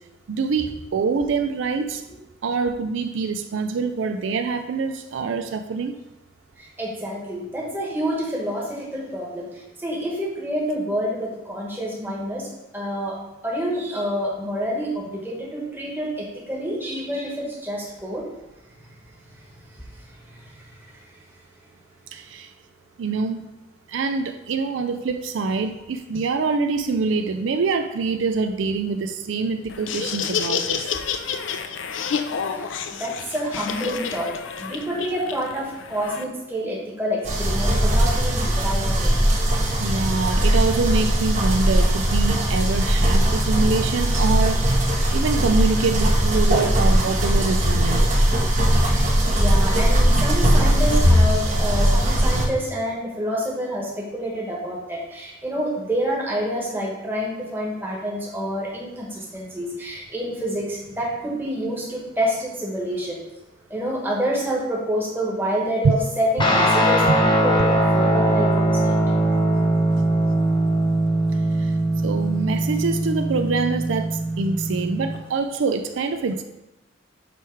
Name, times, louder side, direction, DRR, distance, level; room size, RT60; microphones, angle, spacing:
voice 1, 0.3-2.0 2.4-5.9 22.1-22.5 23.0-23.5 23.9-31.0 39.8-44.7 45.1-48.1 65.8-66.0 70.0-70.1 71.6-71.7 72.0-76.4, right 4 dB, 75° right, 8 dB, 0.4 m, -25 dB
voice 2, 6.6-9.5 9.8-12.5 12.7-13.2 13.4-18.3 19.7-19.8 20.3-20.7 32.5-39.1 48.8-49.1 49.3-63.2 63.7-69.0, equal, 10° right, -3 dB, 1.3 m, -28 dB
Laughter, 29.7-36.2, left 6 dB, 70° left, 0.4 m, -29 dB
sound 1, 37.2-52.5, equal, 40° right, 1.0 m, -19 dB
Guitar, 66.4-75.2, right 1 dB, 25° left, 0.9 m, -21 dB
8.0 x 3.1 x 4.6 m, 0.99 s
head